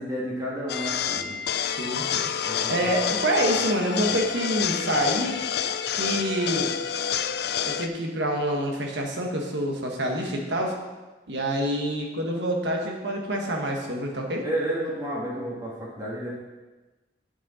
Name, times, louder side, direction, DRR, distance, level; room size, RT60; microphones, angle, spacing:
voice 1, 0.0-1.4 2.4-2.9 14.4-16.4, right 1 dB, 20° right, -5 dB, 1.5 m, -31 dB
sound 1, 0.7-7.9, left 8 dB, 65° left, 0.4 m, -28 dB
voice 2, 1.7-2.3 2.7-5.3 5.9-6.7 7.7-10.8 11.3-14.4, right 1 dB, 80° right, 1 dB, 1.3 m, -27 dB
8.4 x 6.2 x 4.1 m, 1.2 s
head